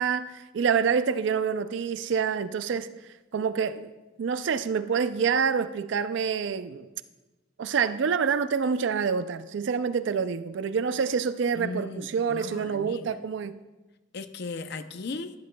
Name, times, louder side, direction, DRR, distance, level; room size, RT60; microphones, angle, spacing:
voice 1, 0.0-2.9 3.3-3.9 4.2-6.9 7.6-13.6, right 6 dB, 70° right, 0.4 m, -27 dB
voice 2, 11.5-13.2 14.1-15.3, left 3 dB, 55° left, 0.5 m, -37 dB
12.5 x 11.0 x 2.2 m
head